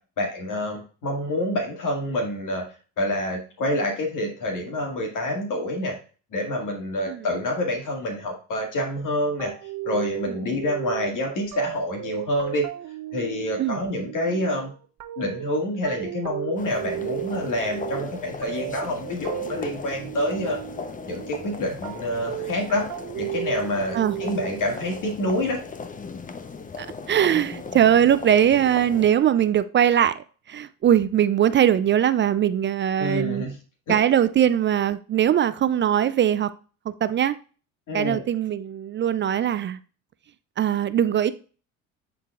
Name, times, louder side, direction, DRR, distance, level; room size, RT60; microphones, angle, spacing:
voice 1, 0.2-2.6 3.0-6.0 6.3-9.5 9.9-12.7 13.1-14.7 15.2-20.6 21.1-22.8 23.2-25.6 33.0-33.6 33.9-34.0 37.9-38.2, left 1 dB, 50° left, 2.0 m, -27 dB
sound 1, 9.4-24.7, right 16 dB, 50° right, 0.9 m, -35 dB
sound 2, 16.6-29.1, left 4 dB, 20° left, 0.7 m, -37 dB
voice 2, 26.8-33.4 33.9-36.5 37.0-37.4 37.9-39.8 40.6-41.3, right 10 dB, 30° right, 0.4 m, -21 dB
10.0 x 3.9 x 2.4 m
hypercardioid pair, 70°, 39 cm